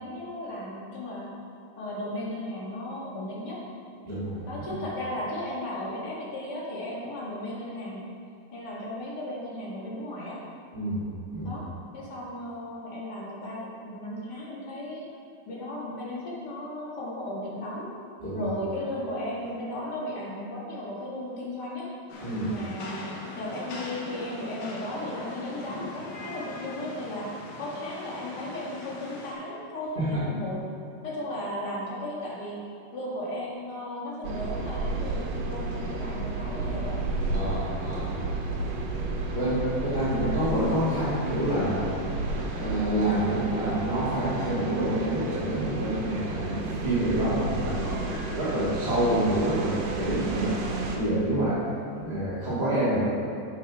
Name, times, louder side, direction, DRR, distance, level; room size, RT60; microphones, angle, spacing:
voice 1, 0.0-1.4 1.8-3.6 4.5-8.0 8.5-10.4 11.4-11.6 11.9-15.0 15.4-17.9 18.3-21.9 22.5-23.0 23.3-27.3 27.6-30.6 31.0-32.6 32.9-37.0 37.4-37.6 47.6-48.2, left 1 dB, 40° left, -6 dB, 1.7 m, -35 dB
voice 2, 4.0-4.4 4.7-4.8 10.7-11.0 11.3-11.6 18.2-18.5 22.2-22.5 29.9-30.2 37.3-38.1 39.3-41.9 42.5-50.5 50.9-51.6 52.0-53.0, right 1 dB, 20° right, -11 dB, 1.2 m, -27 dB
Rain, 22.1-29.3, left 2 dB, 65° left, 2.4 m, -41 dB
sound 1, 34.2-51.0, right 3 dB, 75° right, 2.6 m, -32 dB
7.5 x 7.3 x 5.5 m, 2.4 s
omnidirectional pair, 4.2 m